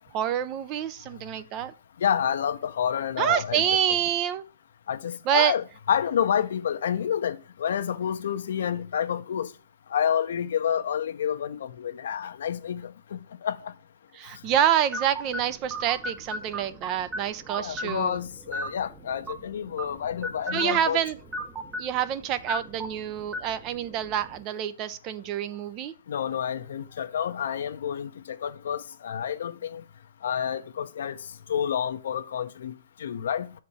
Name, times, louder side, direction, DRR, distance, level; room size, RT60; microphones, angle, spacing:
voice 1, 0.1-1.7 3.2-4.4 5.3-5.5 14.1-18.2 20.5-21.2 21.8-25.9, right 10 dB, 30° right, 0.5 m, -27 dB
voice 2, 2.0-3.6 4.9-9.5 9.9-13.7 17.6-21.0 26.1-29.8 30.2-31.2 31.5-32.7 33.0-33.5, left 8 dB, 65° left, 0.7 m, -29 dB
sound 1, 14.9-24.4, equal, 10° right, 0.8 m, -38 dB
6.8 x 4.3 x 4.9 m
hypercardioid pair, 150°, 0 cm